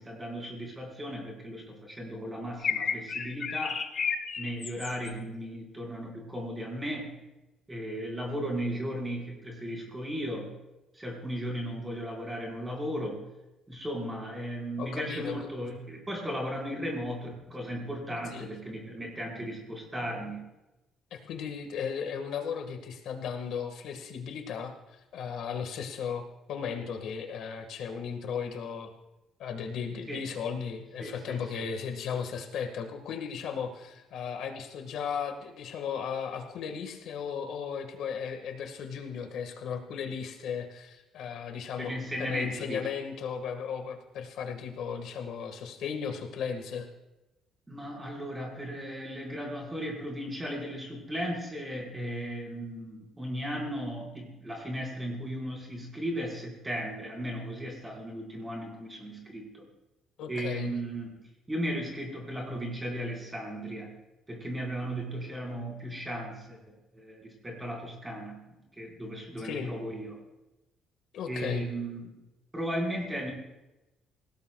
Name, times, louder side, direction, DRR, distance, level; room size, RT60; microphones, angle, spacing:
voice 1, 0.0-3.8 4.4-7.1 7.7-10.5 10.9-13.2 13.7-20.5 30.1-30.3 31.0-31.7 41.8-42.9 47.7-59.7 60.3-61.2 61.5-64.0 64.3-70.2 71.2-72.2 72.5-73.3, equal, 10° right, -1 dB, 4.6 m, -36 dB
sound 1, 2.6-5.1, left 6 dB, 35° left, 1.1 m, -32 dB
voice 2, 14.8-15.4 18.3-18.5 21.1-28.9 29.4-41.9 42.2-46.9 60.2-60.8 69.4-69.7 71.1-71.7, left 7 dB, 65° left, 5 dB, 1.6 m, -36 dB
26.5 x 17.0 x 2.3 m, 0.99 s
cardioid pair, 160°, 0 cm